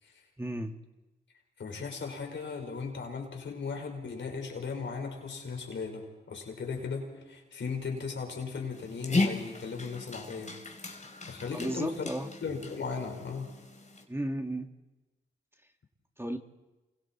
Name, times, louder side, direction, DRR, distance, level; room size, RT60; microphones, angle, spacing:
voice 1, 0.4-0.7 11.5-12.3 14.1-14.7 16.2-16.4, right 1 dB, 10° right, 5 dB, 2.1 m, -34 dB
voice 2, 1.6-10.5 11.2-12.1 12.4-13.5, left 5 dB, 70° left, 3 dB, 4.8 m, -37 dB
Dog, 8.7-14.0, left 2 dB, 35° left, 3.9 m, -36 dB
28.0 x 24.5 x 4.5 m, 1.1 s
supercardioid pair, 45°, 20 cm